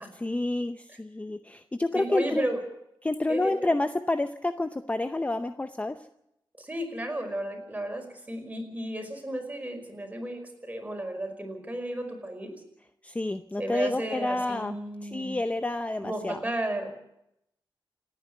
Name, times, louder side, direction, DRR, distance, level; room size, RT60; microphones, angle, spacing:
voice 1, 0.1-2.4 3.0-6.0 13.0-14.7 15.0-16.4, left 2 dB, 15° left, 9 dB, 0.7 m, -29 dB
voice 2, 1.9-2.6 3.3-3.7 6.6-12.5 13.6-15.4 16.0-17.0, right 1 dB, 15° right, 3 dB, 5.1 m, -33 dB
28.0 x 9.8 x 9.4 m, 0.82 s
wide cardioid pair, 120°, 9 cm